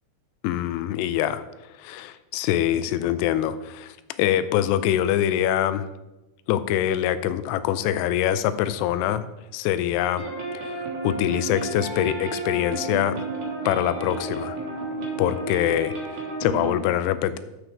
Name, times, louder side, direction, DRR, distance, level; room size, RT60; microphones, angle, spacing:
voice 1, 0.4-5.9 6.5-9.3 9.5-10.3 10.6-13.3 13.7-14.6 15.2-17.4, left 11 dB, 85° left, 13 dB, 2.7 m, -24 dB
sound 1, 10.2-16.7, right 3 dB, 70° right, 3.0 m, -32 dB
9.7 x 7.6 x 3.4 m, 1.0 s
omnidirectional pair, 4.7 m